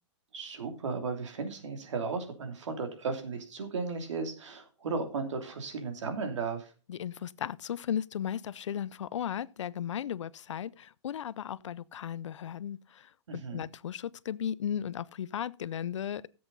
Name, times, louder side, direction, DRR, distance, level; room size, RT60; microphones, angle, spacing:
voice 1, 0.3-6.7 13.3-13.7, right 4 dB, 85° right, 2.9 m, -35 dB
voice 2, 6.9-16.3, left 9 dB, 90° left, 0.6 m, -36 dB
14.5 x 7.9 x 4.0 m
hypercardioid pair, 165°, 15 cm